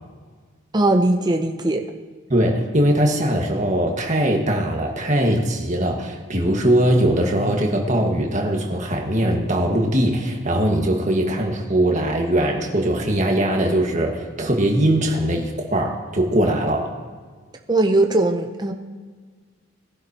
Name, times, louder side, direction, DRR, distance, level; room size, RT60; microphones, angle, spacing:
voice 1, 0.7-1.9 17.7-18.7, right 2 dB, 20° right, 4 dB, 0.7 m, -19 dB
voice 2, 2.3-16.9, right 1 dB, 35° right, 1 dB, 1.6 m, -21 dB
20.0 x 11.0 x 2.9 m, 1.5 s
head